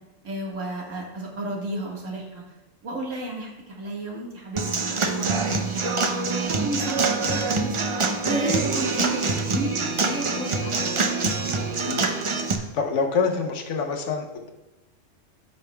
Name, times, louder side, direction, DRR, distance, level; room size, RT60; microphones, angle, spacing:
voice 1, 0.2-2.4 2.8-6.1 6.4-7.8 8.2-9.8 10.0-10.9, right 1 dB, 75° right, -2 dB, 2.0 m, -32 dB
Human voice / Acoustic guitar / Drum, 4.6-12.6, right 3 dB, 45° right, 0.4 m, -25 dB
voice 2, 12.7-14.5, left 5 dB, 65° left, 4 dB, 1.1 m, -26 dB
14.0 x 5.4 x 2.2 m, 1.0 s
omnidirectional pair, 1.3 m